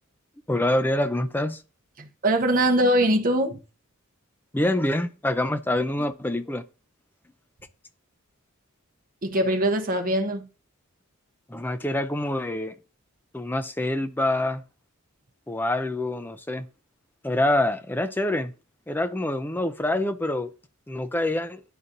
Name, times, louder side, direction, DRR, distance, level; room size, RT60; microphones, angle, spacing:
voice 1, 0.5-1.6 4.5-6.6 11.5-12.8 13.3-14.6 15.5-16.7 17.2-18.5 18.9-20.5 20.9-21.6, left 1 dB, 10° left, 0.4 m, -26 dB
voice 2, 2.0-3.6 9.2-10.5, right 1 dB, 40° right, 0.8 m, -22 dB
11.0 x 4.1 x 2.6 m
head